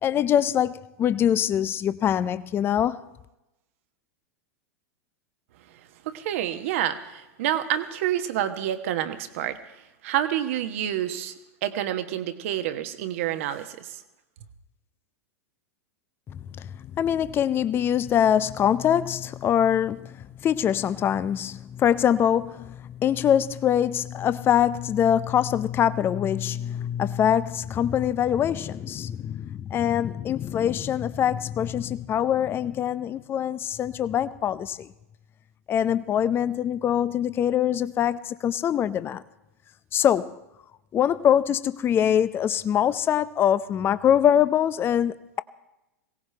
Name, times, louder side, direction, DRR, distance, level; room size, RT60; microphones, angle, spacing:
voice 1, 0.0-3.0 16.3-34.9 35.7-39.2 39.9-40.4 40.9-45.4, left 9 dB, 25° left, 0.5 m, -24 dB
voice 2, 6.0-9.6 10.0-11.3 11.6-14.0, right 11 dB, 60° right, 1.2 m, -28 dB
22.0 x 17.5 x 3.3 m
figure-of-eight pair, 90°, 8 cm